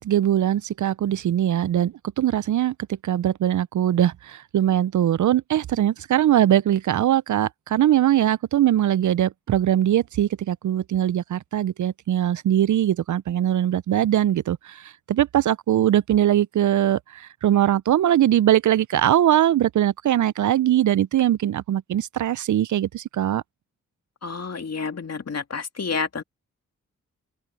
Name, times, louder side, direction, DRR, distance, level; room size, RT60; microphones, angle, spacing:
voice 1, 0.0-23.4, right 11 dB, 65° right, 0.6 m, -21 dB
voice 2, 24.2-26.2, left 5 dB, 50° left, 2.5 m, -29 dB
open air
supercardioid pair, 45°, 32 cm